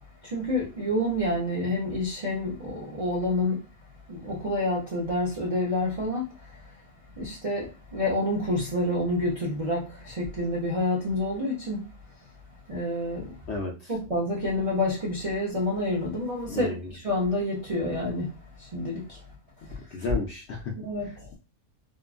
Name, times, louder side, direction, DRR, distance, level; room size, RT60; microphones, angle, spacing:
voice 1, 0.2-3.6 4.1-6.6 7.2-11.9 12.7-13.4 13.9-19.3 19.7-19.8 20.8-21.3, left 1 dB, 45° right, 0.4 m, -28 dB
voice 2, 13.5-13.9 16.5-16.9 19.9-20.7, left 3 dB, 65° left, 0.7 m, -32 dB
2.9 x 2.3 x 2.4 m
omnidirectional pair, 1.6 m